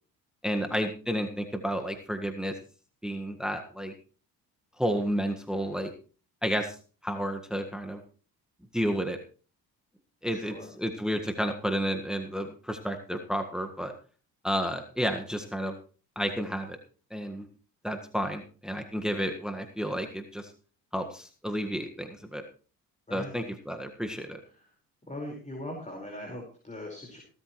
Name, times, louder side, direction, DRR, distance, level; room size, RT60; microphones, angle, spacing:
voice 1, 0.4-2.6 3.0-3.9 4.8-5.9 6.4-6.8 7.0-8.0 8.7-9.2 10.2-13.9 14.4-15.7 16.2-16.8 17.1-17.5 17.8-20.5 20.9-22.4 23.1-24.4, equal, ahead, 5 dB, 1.6 m, -31 dB
voice 2, 10.2-10.7 23.1-23.3 24.5-24.6 25.1-27.2, left 1 dB, 15° left, 0 dB, 4.8 m, -40 dB
17.0 x 13.0 x 3.2 m, 0.38 s
supercardioid pair, 65°, 41 cm